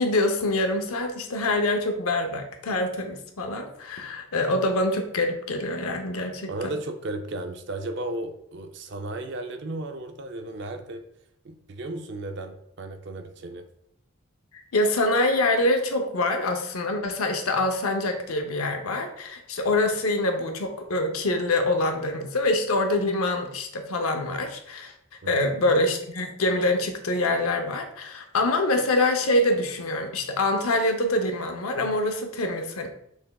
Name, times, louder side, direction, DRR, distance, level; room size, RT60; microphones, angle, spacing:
voice 1, 0.0-6.5 14.7-24.9 25.3-32.9, left 2 dB, 90° left, 5 dB, 0.7 m, -25 dB
voice 2, 6.5-11.0 11.4-13.6 25.2-25.5, right 2 dB, 55° right, 6 dB, 0.5 m, -34 dB
6.1 x 3.4 x 2.3 m, 0.73 s
head